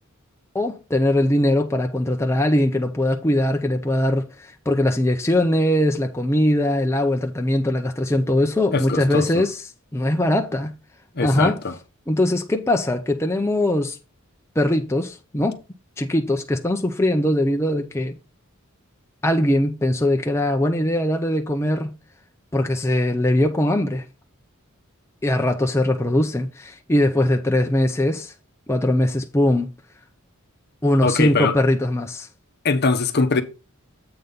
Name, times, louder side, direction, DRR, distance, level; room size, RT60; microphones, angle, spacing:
voice 1, 0.5-10.7 11.2-11.6 12.1-14.0 14.6-15.6 16.0-18.1 19.2-21.9 22.5-24.0 25.2-28.3 28.7-29.7 30.8-32.3, left 1 dB, 15° left, 0.5 m, -21 dB
voice 2, 8.7-9.2 11.1-11.7 31.0-31.6 32.6-33.4, left 3 dB, 50° left, 0.8 m, -21 dB
7.9 x 4.0 x 5.2 m
head